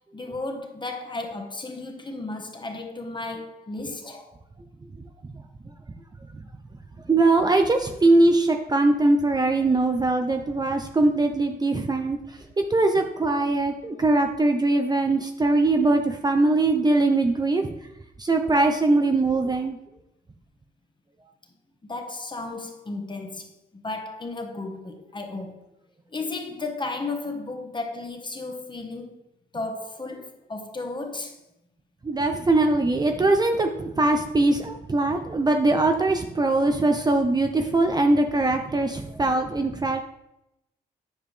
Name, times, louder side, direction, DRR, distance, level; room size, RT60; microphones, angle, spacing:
voice 1, 0.1-4.4 21.8-25.7 26.1-29.2 29.5-31.4, left 3 dB, 25° left, 1.3 m, -34 dB
voice 2, 7.1-12.2 12.7-17.7 18.2-19.8 32.0-40.0, right 2 dB, 25° right, 0.6 m, -21 dB
9.7 x 4.9 x 3.3 m
cardioid pair, 75°, 18 cm